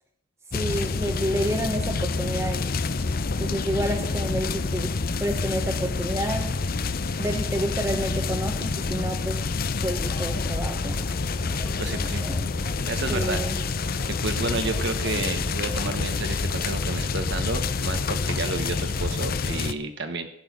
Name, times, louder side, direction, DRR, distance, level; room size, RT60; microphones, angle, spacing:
sound 1, 0.5-19.7, left 4 dB, 50° left, 0.7 m, -27 dB
voice 1, 0.5-3.1 3.4-4.9 5.2-6.6 7.2-9.4 9.8-11.0 12.0-12.5 13.1-13.6, right 1 dB, 15° right, 1 dB, 1.1 m, -30 dB
sound 2, 9.9-15.9, left 1 dB, 20° left, 1.4 m, -41 dB
voice 2, 11.8-12.3 12.8-13.4 14.1-20.3, right 3 dB, 60° right, 7 dB, 1.1 m, -31 dB
16.0 x 6.4 x 9.6 m, 0.73 s
head